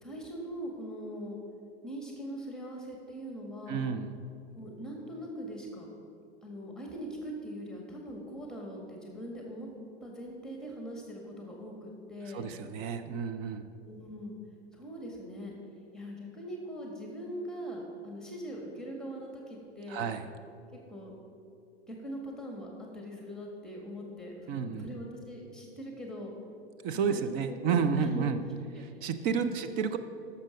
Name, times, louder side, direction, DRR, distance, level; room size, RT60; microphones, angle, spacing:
voice 1, 0.0-1.4 1.8-3.8 4.5-5.9 6.4-9.7 10.0-12.5 13.8-14.3 14.7-15.5 15.9-20.0 20.9-21.2 21.9-22.7 22.9-26.3 27.1-28.2 28.7-29.0 29.4-29.5, equal, ahead, 0 dB, 1.7 m, -41 dB
voice 2, 3.7-4.1 12.3-13.6 19.9-20.2 24.5-24.9 26.8-28.4 28.8-30.0, right 6 dB, 30° right, 9 dB, 0.6 m, -31 dB
11.5 x 6.8 x 5.1 m, 2.4 s
figure-of-eight pair, 105°, 32 cm